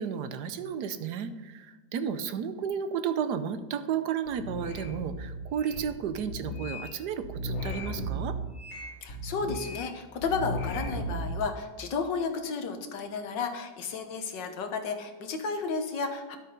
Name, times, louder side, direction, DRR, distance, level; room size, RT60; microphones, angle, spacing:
voice 1, 0.0-8.4, right 7 dB, 65° right, 10 dB, 1.1 m, -33 dB
sound 1, 4.3-5.8 6.1-6.9 7.2-9.9 10.2-11.3, right 1 dB, 90° left, 2.9 m, -36 dB
voice 2, 9.0-16.4, left 5 dB, 65° left, 6 dB, 1.8 m, -32 dB
11.0 x 8.2 x 5.3 m, 1.2 s
omnidirectional pair, 2.1 m